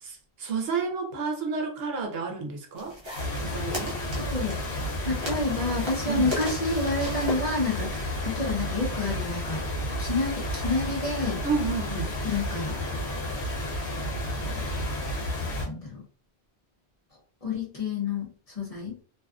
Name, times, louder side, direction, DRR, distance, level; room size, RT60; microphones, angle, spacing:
voice 1, 0.0-3.0 3.4-4.0 6.1-6.3 11.4-12.2, right 4 dB, 70° right, 0.8 m, -30 dB
sound 1, 2.8-9.7, left 1 dB, 30° right, 0.7 m, -38 dB
sound 2, 3.1-15.7, left 1 dB, 80° left, 1.1 m, -31 dB
voice 2, 4.2-4.6 5.0-9.6 10.0-11.4 12.2-12.8 14.4-14.6 15.7-16.0 17.4-18.3 18.6-19.0, left 3 dB, 40° left, 0.7 m, -29 dB
2.5 x 2.3 x 2.3 m
omnidirectional pair, 1.1 m